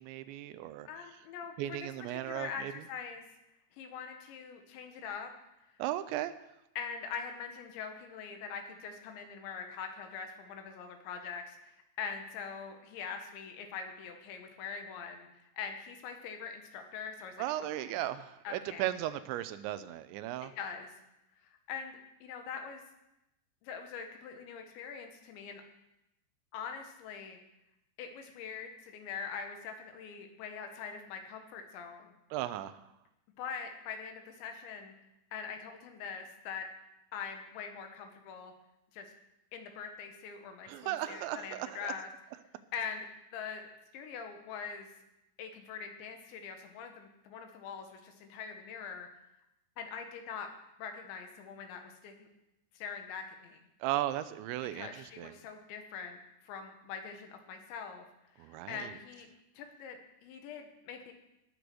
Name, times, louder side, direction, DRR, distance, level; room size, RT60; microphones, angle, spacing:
voice 1, 0.0-0.9 1.6-2.8 5.8-6.3 17.4-20.5 32.3-32.8 40.7-41.9 53.8-55.3 58.4-58.9, right 13 dB, 90° right, 13 dB, 3.0 m, -36 dB
voice 2, 0.9-3.2 3.8-5.3 6.8-15.3 15.6-17.4 17.8-18.0 18.5-18.9 20.4-20.9 21.4-22.8 23.6-25.6 26.5-27.4 28.0-32.1 33.4-34.9 35.3-36.7 37.1-38.5 38.9-39.1 39.5-42.1 42.7-43.1 43.3-44.9 45.4-49.1 49.8-50.5 50.8-52.3 52.8-53.6 54.7-58.1 58.4-59.3 59.6-61.1, left 6 dB, 85° left, 5 dB, 3.8 m, -43 dB
19.0 x 7.0 x 6.2 m, 0.89 s
omnidirectional pair, 5.1 m